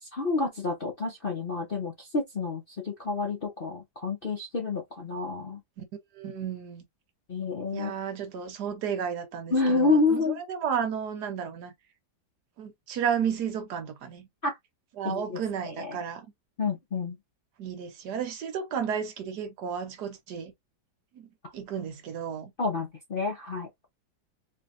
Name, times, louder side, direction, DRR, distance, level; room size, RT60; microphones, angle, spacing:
voice 1, 0.0-5.6 7.3-7.9 9.5-10.4 14.4-14.6 15.0-16.0 16.6-17.2 22.6-23.7, left 3 dB, 50° left, 0.7 m, -29 dB
voice 2, 6.1-6.8 7.7-11.7 12.6-14.3 15.0-16.3 17.6-20.5 21.1-22.5, right 7 dB, 65° right, 1.3 m, -33 dB
4.0 x 2.8 x 2.5 m
omnidirectional pair, 2.0 m